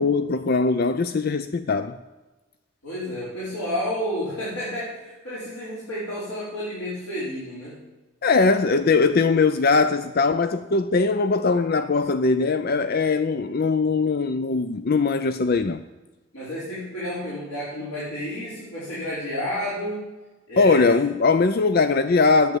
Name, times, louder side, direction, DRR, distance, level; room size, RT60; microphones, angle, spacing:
voice 1, 0.0-2.0 8.2-15.8 20.6-22.6, left 4 dB, 45° left, 0.5 m, -21 dB
voice 2, 2.8-7.8 16.3-20.1 20.5-20.9, equal, 90° left, 5.0 m, -31 dB
11.0 x 8.7 x 9.4 m
head